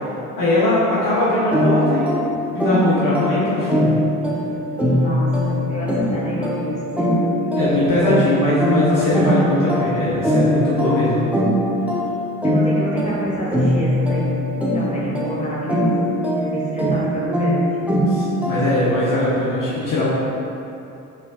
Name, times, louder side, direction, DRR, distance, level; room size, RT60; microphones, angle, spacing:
voice 1, 0.4-2.1 2.5-3.9 7.5-11.3 18.1-20.1, left 1 dB, 50° left, -8 dB, 1.0 m, -20 dB
sound 1, 1.5-19.0, equal, 5° right, 0.8 m, -21 dB
voice 2, 5.0-7.9 12.4-14.3 14.7-15.9 16.3-17.8, right 1 dB, 15° left, -6 dB, 1.5 m, -29 dB
6.6 x 3.2 x 2.4 m, 2.9 s
figure-of-eight pair, 45°, 43 cm